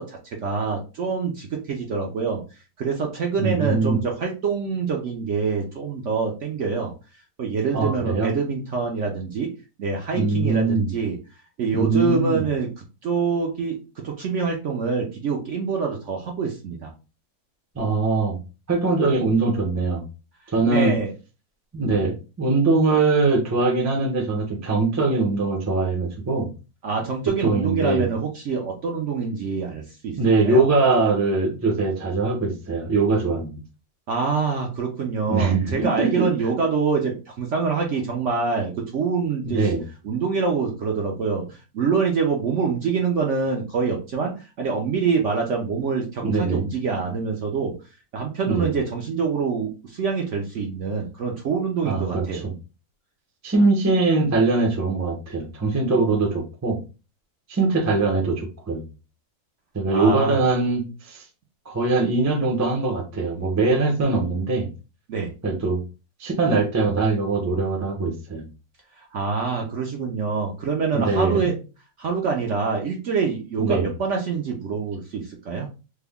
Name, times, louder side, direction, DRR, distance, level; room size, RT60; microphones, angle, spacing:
voice 1, 0.0-2.4 2.8-6.9 7.4-9.5 9.8-11.2 11.6-12.7 13.0-13.8 14.0-16.9 20.6-21.1 26.8-30.6 34.1-39.7 40.0-47.7 48.1-52.5 59.9-60.4 65.1-65.3 69.1-71.6 72.0-75.7, right 5 dB, 60° right, 1 dB, 0.8 m, -25 dB
voice 2, 3.4-4.0 7.7-8.3 10.1-10.9 11.7-12.4 17.7-18.4 18.7-20.0 20.5-20.9 21.7-26.5 27.4-28.1 30.2-33.6 35.3-36.3 39.4-39.8 46.2-46.6 48.5-48.7 51.8-52.5 53.4-56.8 57.5-58.8 59.7-61.2 61.6-64.7 65.4-65.8 66.2-68.4 70.9-71.5 73.6-73.9, right 3 dB, 20° right, 1 dB, 0.4 m, -22 dB
3.3 x 2.1 x 3.5 m, 0.31 s
omnidirectional pair, 1.8 m